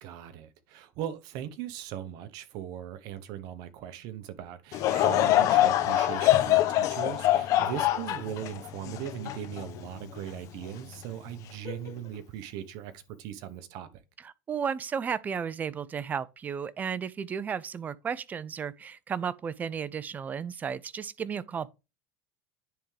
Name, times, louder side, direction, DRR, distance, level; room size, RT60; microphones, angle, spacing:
voice 1, 0.0-13.9, right 11 dB, 60° right, 1.0 m, -39 dB
Laughter / Crowd, 4.7-10.2 10.7-10.8 11.6-11.9, left 13 dB, 50° left, 0.8 m, -24 dB
voice 2, 14.2-21.7, right 7 dB, 20° right, 0.4 m, -34 dB
10.0 x 3.6 x 3.3 m
supercardioid pair, 135°, 7 cm